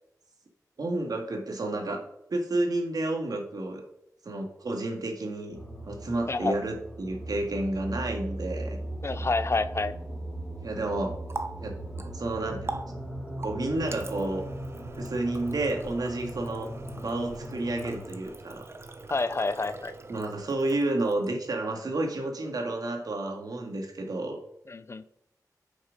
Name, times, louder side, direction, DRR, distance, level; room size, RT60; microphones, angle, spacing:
voice 1, 0.8-3.8 4.2-5.6 5.8-8.8 10.6-11.2 11.6-12.8 13.4-14.4 15.0-18.7 20.1-24.4, right 2 dB, 75° right, 3 dB, 2.0 m, -31 dB
sound 1, 5.5-18.1, right 1 dB, 20° left, 3.2 m, -38 dB
voice 2, 9.0-9.9 19.1-19.9 24.7-25.0, left 3 dB, 45° left, 13 dB, 0.6 m, -28 dB
Water tap faucet, 10.8-21.6, right 2 dB, 40° right, 0.9 m, -43 dB
10.0 x 6.4 x 5.2 m, 0.78 s
wide cardioid pair, 100°, 7 cm